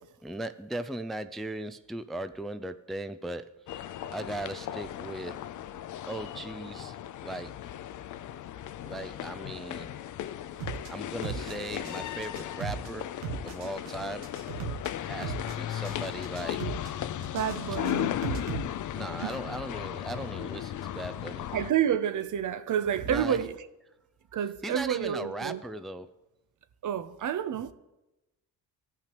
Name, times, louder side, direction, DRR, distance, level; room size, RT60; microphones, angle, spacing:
voice 1, 0.2-3.8 4.1-5.4 6.1-7.0 7.2-7.5 8.8-9.9 10.9-13.1 13.4-14.3 15.1-16.9 18.7-21.5 23.1-23.4 24.6-26.1, right 1 dB, ahead, 0.4 m, -38 dB
sound 1, 3.7-21.7, left 11 dB, 55° left, 0.5 m, -36 dB
sound 2, 10.6-10.9 11.2-12.0 12.2-12.9 13.2-13.9 14.2-14.9 15.2-16.0 16.2-16.9 17.2-18.6, right 7 dB, 85° right, 1.3 m, -36 dB
voice 2, 17.2-18.1 21.5-23.5 24.3-25.6 26.8-27.7, right 9 dB, 50° right, 0.7 m, -29 dB
16.0 x 5.8 x 3.0 m
supercardioid pair, 65°, 38 cm